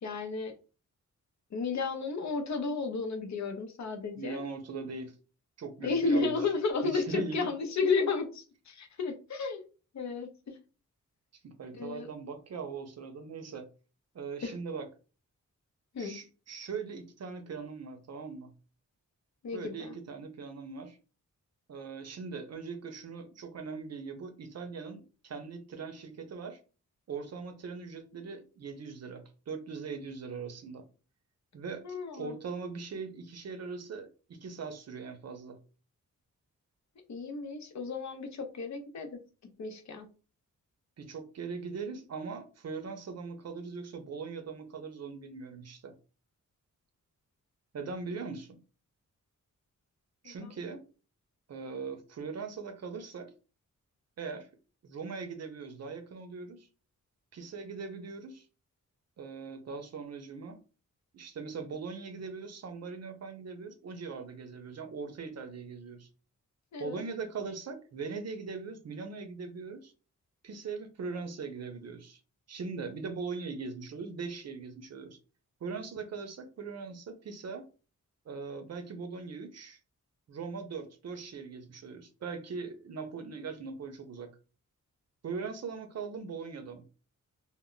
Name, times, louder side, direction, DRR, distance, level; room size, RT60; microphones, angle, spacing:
voice 1, 0.0-0.5 1.5-4.4 5.8-9.6 9.9-10.6 11.7-12.1 14.4-14.5 15.9-16.2 19.4-19.9 31.8-32.4 37.1-39.2 39.6-40.1 50.2-50.5 66.7-67.0, left 4 dB, 60° left, 0.6 m, -33 dB
voice 2, 4.2-5.1 5.6-6.3 6.8-7.5 11.4-13.7 14.1-14.9 16.0-18.5 19.5-21.0 21.7-26.6 27.1-30.9 31.5-35.6 41.0-45.9 47.7-48.6 50.2-50.8 51.5-53.3 54.2-54.5 54.8-56.7 57.3-58.5 59.2-60.6 61.1-66.1 66.8-69.9 70.4-72.2 72.5-75.2 75.6-77.6 78.3-79.8 80.3-84.3 85.2-86.8, right 5 dB, 55° right, 0.6 m, -40 dB
2.1 x 2.1 x 3.7 m
wide cardioid pair, 160°, 31 cm